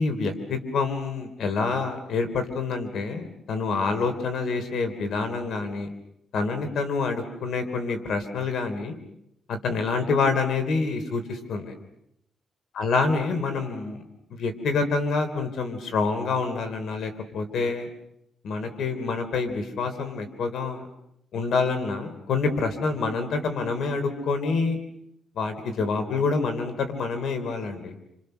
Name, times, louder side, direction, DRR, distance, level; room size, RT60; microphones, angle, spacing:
voice 1, 0.0-5.9 6.3-9.0 9.5-11.7 12.7-14.0 14.3-17.9 18.4-20.9 21.3-24.8 25.3-27.9, left 4 dB, 80° left, 8 dB, 3.4 m, -27 dB
28.5 x 27.5 x 6.6 m, 0.78 s
cardioid pair, 110°, 0 cm